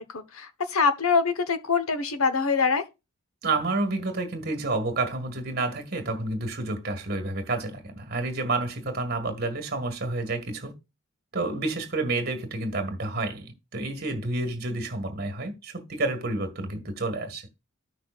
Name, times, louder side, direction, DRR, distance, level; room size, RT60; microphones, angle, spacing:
voice 1, 0.1-2.8, left 5 dB, 80° left, 1.1 m, -24 dB
voice 2, 3.4-10.7 11.3-17.5, right 2 dB, 45° right, 1.8 m, -29 dB
14.5 x 5.9 x 2.4 m
head